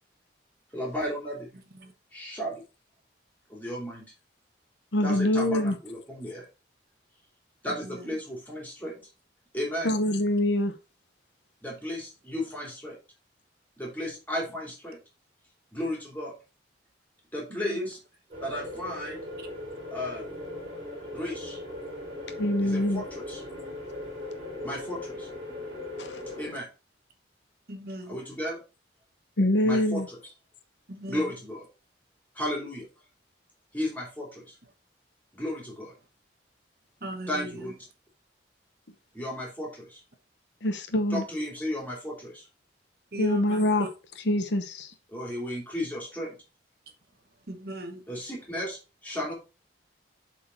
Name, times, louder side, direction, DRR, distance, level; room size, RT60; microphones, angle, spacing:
voice 1, 0.7-1.5 2.1-2.6 3.5-4.1 5.0-6.5 7.6-9.0 9.5-9.9 11.6-13.0 13.8-15.0 15.7-16.3 17.3-18.0 18.4-19.2 19.9-20.3 21.1-21.6 22.6-23.4 24.6-25.3 26.4-26.7 28.1-28.6 29.6-30.2 31.1-31.6 32.3-32.9 33.7-34.6 35.3-35.9 37.3-37.7 39.1-40.0 41.1-42.5 45.1-46.4 48.1-49.3, left 1 dB, 10° left, 2.9 m, -34 dB
voice 2, 4.9-5.8 9.8-10.7 22.4-23.0 26.0-26.5 29.4-30.1 40.6-41.2 43.2-43.9 44.3-44.9, left 1 dB, 70° left, 0.9 m, -25 dB
voice 3, 7.7-8.2 17.5-17.9 19.4-19.5 27.7-28.2 30.9-31.4 37.0-37.7 43.1-43.9 47.5-48.1, right 1 dB, 55° right, 1.1 m, -38 dB
sound 1, 18.3-26.5, left 1 dB, 30° right, 3.2 m, -39 dB
7.3 x 4.3 x 4.4 m
head